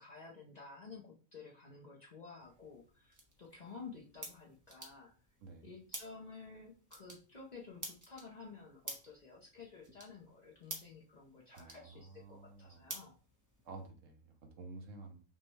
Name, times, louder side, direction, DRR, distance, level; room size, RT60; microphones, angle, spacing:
voice 1, 0.0-5.2 5.6-13.1, left 4 dB, 40° left, -2 dB, 0.7 m, -52 dB
sound 1, 2.4-13.9, right 1 dB, 20° right, 0.5 m, -52 dB
voice 2, 11.5-12.9 13.6-15.2, right 3 dB, 70° right, 4 dB, 1.1 m, -51 dB
5.3 x 2.2 x 3.1 m, 0.37 s
omnidirectional pair, 1.4 m